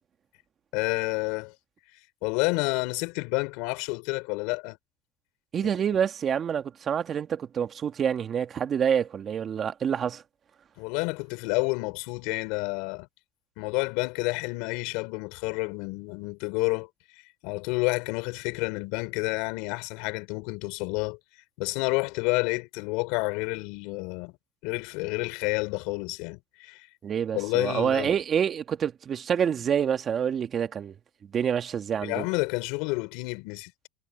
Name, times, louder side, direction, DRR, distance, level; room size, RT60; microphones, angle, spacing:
voice 1, 0.7-1.5 2.2-4.8 10.8-13.1 13.6-16.9 17.4-21.2 21.6-24.3 24.6-26.9 27.3-28.1 32.0-33.9, left 27 dB, 65° left, 4.7 m, -29 dB
voice 2, 5.5-10.2 27.0-31.0 31.3-32.2, right 8 dB, 30° right, 1.9 m, -27 dB
supercardioid pair, 125°, 0 cm